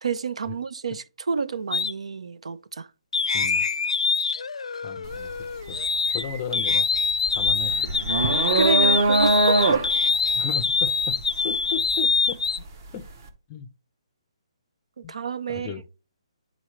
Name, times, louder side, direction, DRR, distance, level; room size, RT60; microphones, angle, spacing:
voice 1, 0.0-2.9 8.5-9.9 15.0-15.7, right 5 dB, 75° right, 0.6 m, -29 dB
sound 1, 1.7-1.9 3.1-6.2 6.5-12.6, left 5 dB, 85° left, 0.5 m, -24 dB
voice 2, 4.8-5.3 5.7-5.8 6.1-6.9 7.3-7.9 10.3-11.2 11.4-12.4 12.9-13.1 13.5-13.7 15.0-15.1 15.5-15.8, left 8 dB, 20° left, 0.5 m, -35 dB
sound 2, 5.0-5.3 5.7-12.7, right 3 dB, 30° right, 0.9 m, -24 dB
10.0 x 3.9 x 3.2 m
hypercardioid pair, 170°, 3 cm